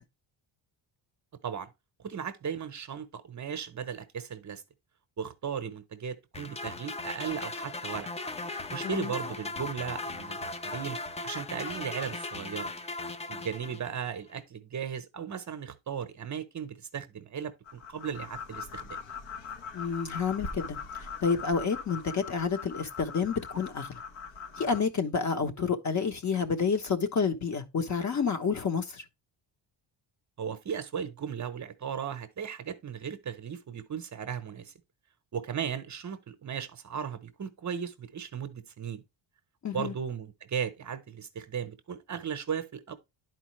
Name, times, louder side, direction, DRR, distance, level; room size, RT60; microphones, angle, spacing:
voice 1, 2.0-4.6 5.2-8.1 8.7-11.0 11.2-12.7 13.3-19.0 30.4-34.7 35.3-39.0 39.7-42.9, right 7 dB, 35° right, 0.8 m, -36 dB
sound 1, 6.3-14.1, left 3 dB, 15° left, 0.4 m, -38 dB
sound 2, 17.7-24.8, left 5 dB, 65° left, 1.2 m, -41 dB
voice 2, 19.7-20.8 21.2-24.0 24.6-29.0 39.6-39.9, left 5 dB, 35° left, 1.1 m, -29 dB
11.0 x 4.6 x 3.0 m
cardioid pair, 150°, 48 cm